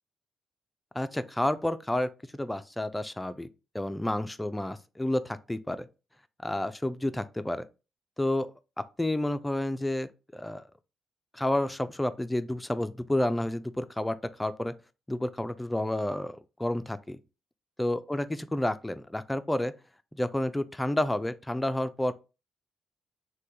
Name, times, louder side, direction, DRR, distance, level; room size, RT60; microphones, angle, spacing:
voice 1, 1.0-3.5 3.7-5.9 6.4-7.6 8.2-8.5 9.0-10.6 11.3-14.7 15.1-17.2 17.8-19.7 20.2-22.1, left 1 dB, 10° left, 0.4 m, -30 dB
3.4 x 2.2 x 2.8 m
supercardioid pair, 55°, 0 cm